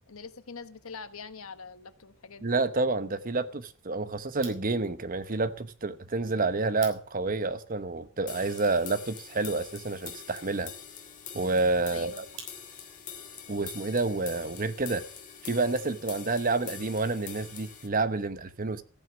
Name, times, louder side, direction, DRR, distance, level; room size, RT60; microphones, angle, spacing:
voice 1, 0.0-2.5 11.9-12.2, left 5 dB, 90° left, 1.3 m, -44 dB
voice 2, 2.4-10.7 11.3-12.3 13.5-15.0 15.4-18.8, right 3 dB, 40° right, 1.0 m, -29 dB
sound 1, 4.3-13.0, right 6 dB, 65° right, 4.4 m, -53 dB
sound 2, 8.3-17.9, left 8 dB, 40° left, 2.3 m, -45 dB
14.5 x 9.5 x 6.2 m
head